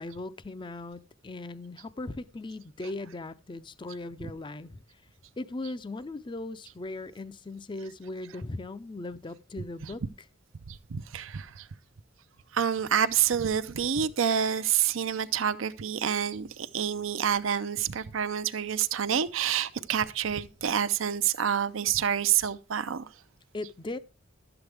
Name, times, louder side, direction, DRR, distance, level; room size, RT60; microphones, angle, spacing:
voice 1, 0.0-4.8 5.4-10.0 23.5-24.0, left 2 dB, 25° left, 0.5 m, -38 dB
voice 2, 10.7-11.7 12.5-23.1, right 8 dB, 75° right, 0.6 m, -28 dB
12.0 x 7.9 x 3.4 m
head